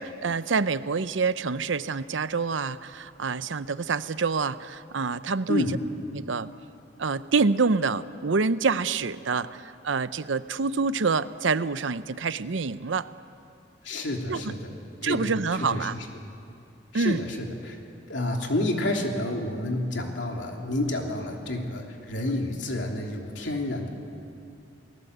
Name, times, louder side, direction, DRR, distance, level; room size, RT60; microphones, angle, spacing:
voice 1, 0.0-5.6 6.1-6.5 7.0-13.1 14.3-14.5 15.0-15.9 16.9-17.2, right 4 dB, 85° right, 14 dB, 0.7 m, -27 dB
voice 2, 13.8-14.7 15.0-16.1 16.9-17.8 18.1-23.9, left 1 dB, 75° left, 1 dB, 3.1 m, -29 dB
29.0 x 19.5 x 8.1 m, 2.6 s
head